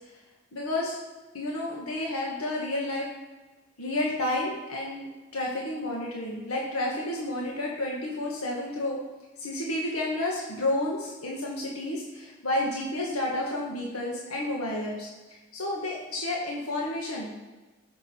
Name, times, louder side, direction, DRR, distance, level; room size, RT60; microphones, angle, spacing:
voice 1, 0.5-1.0 1.3-3.1 3.8-9.0 9.4-15.1 15.5-17.3, left 1 dB, 85° left, -2 dB, 1.7 m, -31 dB
13.0 x 6.5 x 4.5 m, 1.2 s
head